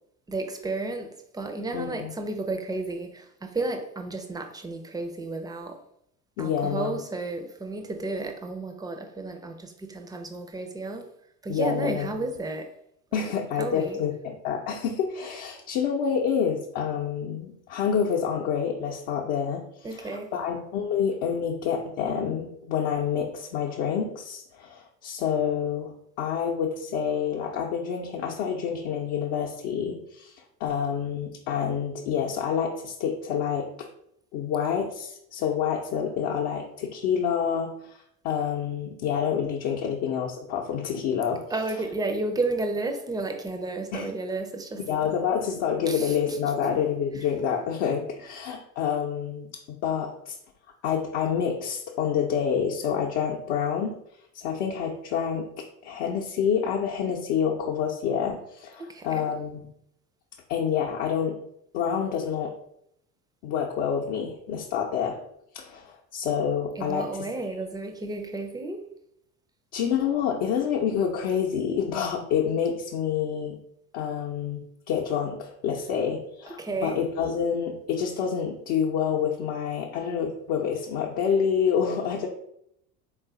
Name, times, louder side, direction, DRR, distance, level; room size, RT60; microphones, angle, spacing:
voice 1, 0.3-5.8 6.4-11.1 11.4-12.7 13.1-14.0 19.8-20.4 41.5-44.9 45.8-46.5 47.1-47.4 58.8-59.3 66.7-68.8 76.5-77.0, right 2 dB, 10° right, 5 dB, 0.4 m, -32 dB
voice 2, 1.7-2.1 6.4-7.0 11.5-12.1 13.1-19.6 19.9-25.9 26.2-33.9 34.3-41.4 43.9-44.1 44.9-50.4 50.8-54.0 54.3-59.7 60.5-61.4 61.7-62.5 63.4-65.2 65.5-67.2 69.7-73.6 73.9-74.6 74.9-82.3, left 7 dB, 60° left, 0 dB, 0.7 m, -28 dB
3.9 x 2.4 x 3.6 m, 0.74 s
hypercardioid pair, 65°, 43 cm